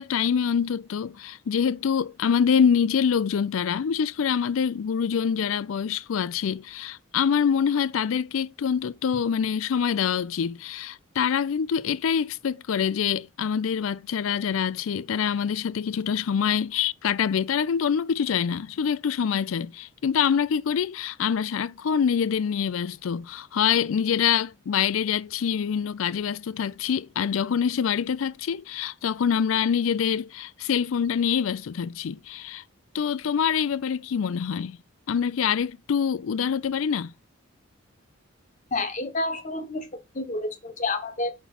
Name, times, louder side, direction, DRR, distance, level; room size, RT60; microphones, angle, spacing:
voice 1, 0.0-32.6 32.9-34.8 35.1-37.1, left 7 dB, 85° left, 0.4 m, -25 dB
voice 2, 38.7-41.3, left 2 dB, 35° left, 1.1 m, -29 dB
5.6 x 4.4 x 5.8 m
head